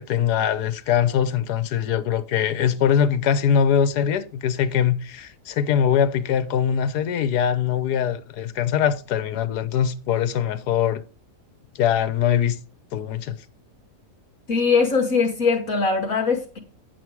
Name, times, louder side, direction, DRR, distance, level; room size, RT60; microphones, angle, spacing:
voice 1, 0.0-11.0 11.7-12.6 12.9-13.3, left 8 dB, 75° left, 1.4 m, -22 dB
voice 2, 14.5-16.6, left 5 dB, 60° left, 1.5 m, -21 dB
9.5 x 7.7 x 4.7 m
omnidirectional pair, 1.7 m